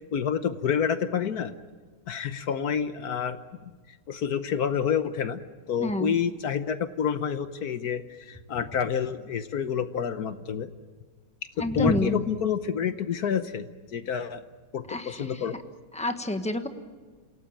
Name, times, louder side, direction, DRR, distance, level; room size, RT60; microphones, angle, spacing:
voice 1, 0.1-1.5 2.1-3.7 4.1-5.4 5.7-10.7 11.7-14.4 14.7-15.6, left 7 dB, 60° left, 11 dB, 1.2 m, -28 dB
voice 2, 5.8-6.1 11.6-12.2 14.9-15.4 15.9-16.7, left 1 dB, 5° left, 7 dB, 0.9 m, -28 dB
28.0 x 17.5 x 8.9 m, 1.4 s
omnidirectional pair, 2.2 m